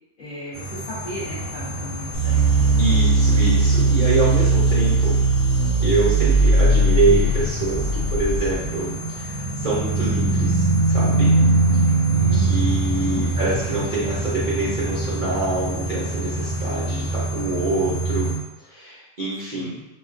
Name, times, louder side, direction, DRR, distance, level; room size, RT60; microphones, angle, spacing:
voice 1, 0.2-2.6 12.1-13.2 19.5-19.9, left 2 dB, 40° left, -9 dB, 0.9 m, -36 dB
sound 1, 0.5-18.4, right 2 dB, 90° right, 1.4 m, -24 dB
sound 2, 2.1-8.7, right 2 dB, 80° left, 1.2 m, -18 dB
voice 2, 2.8-5.2 5.8-11.3 11.7-11.9 12.3-18.3 18.6-19.7, right 3 dB, 65° right, -8 dB, 0.5 m, -26 dB
4.0 x 2.2 x 2.5 m, 0.96 s
omnidirectional pair, 1.7 m